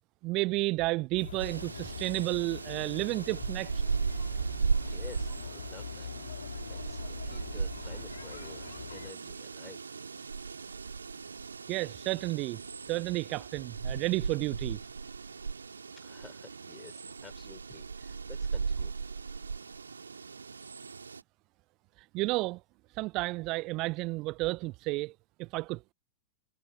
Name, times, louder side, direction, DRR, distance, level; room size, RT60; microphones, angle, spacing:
voice 1, 0.2-3.8 11.7-12.6 12.9-14.8 22.1-22.6 22.9-25.1 25.4-25.8, right 22 dB, 40° right, 0.6 m, -31 dB
sound 1, 1.2-9.1, left 7 dB, 70° left, 2.3 m, -43 dB
sound 2, 1.4-21.2, right 5 dB, 75° right, 2.2 m, -37 dB
voice 2, 4.9-6.1 6.6-9.8 16.0-18.9, left 4 dB, 15° left, 3.5 m, -52 dB
figure-of-eight pair, 90°, 0 cm